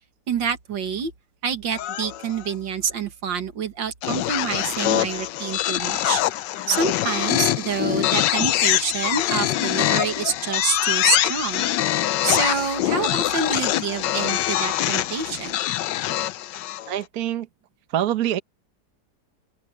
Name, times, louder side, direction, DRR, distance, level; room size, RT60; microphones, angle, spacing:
voice 1, 0.3-1.1 1.4-6.2 6.7-11.6 12.2-15.6, right 6 dB, 85° right, 2.4 m, -27 dB
sound 1, 1.7-2.5 4.0-17.0, left 13 dB, 75° left, 1.3 m, -24 dB
voice 2, 16.9-17.5 17.9-18.4, right 11 dB, 60° right, 1.4 m, -24 dB
open air
omnidirectional pair, 2.0 m